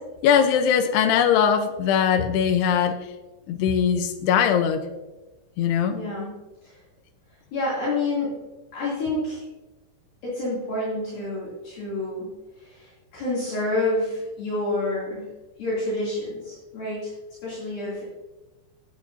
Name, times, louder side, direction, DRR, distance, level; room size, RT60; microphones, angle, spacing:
voice 1, 0.2-3.0 3.5-4.8 5.6-6.0, left 8 dB, 80° left, 6 dB, 2.5 m, -20 dB
voice 2, 5.9-6.3 6.6-6.8 7.3-8.4 8.7-9.4 10.2-15.3 15.6-17.1 17.4-18.0, left 2 dB, 55° left, -8 dB, 4.2 m, -28 dB
15.5 x 8.4 x 2.6 m, 1.1 s
omnidirectional pair, 5.3 m